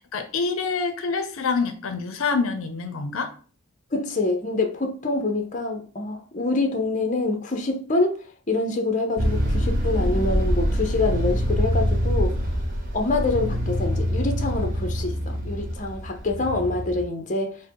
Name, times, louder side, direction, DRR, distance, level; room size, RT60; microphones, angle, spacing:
voice 1, 0.0-3.4, left 4 dB, 75° left, 0.5 m, -26 dB
voice 2, 3.9-8.2 8.5-12.4 12.9-17.5, left 2 dB, 35° left, 0.6 m, -26 dB
sound 1, 9.2-17.1, equal, 40° right, 1.0 m, -25 dB
4.5 x 2.0 x 4.6 m
head